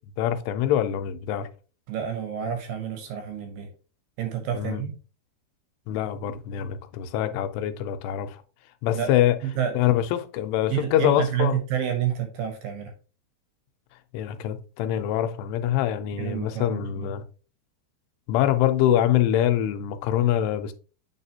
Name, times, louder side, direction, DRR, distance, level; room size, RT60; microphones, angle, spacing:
voice 1, 0.2-1.5 4.5-4.8 5.9-8.4 8.8-9.4 9.7-11.6 14.1-17.2 18.3-20.7, left 11 dB, 90° left, 2.7 m, -24 dB
voice 2, 1.9-3.7 4.2-4.9 8.9-9.1 9.4-9.7 10.7-12.9 16.1-17.1, right 9 dB, 75° right, 2.2 m, -29 dB
8.4 x 4.1 x 2.8 m
omnidirectional pair, 4.7 m